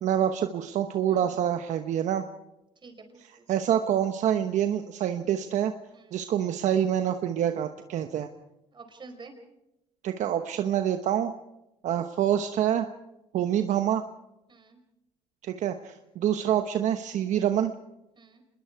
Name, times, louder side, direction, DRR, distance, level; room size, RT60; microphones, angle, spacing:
voice 1, 0.0-2.2 3.2-5.7 6.1-8.3 10.0-11.3 11.8-12.9 13.3-14.0 15.4-17.7, right 10 dB, 70° right, 7 dB, 1.0 m, -26 dB
voice 2, 2.8-3.4 5.9-6.1 8.7-9.3 14.5-14.8 18.2-18.4, right 4 dB, 35° right, 6 dB, 4.9 m, -48 dB
26.5 x 21.0 x 4.7 m, 0.91 s
cardioid pair, 85°, 13 cm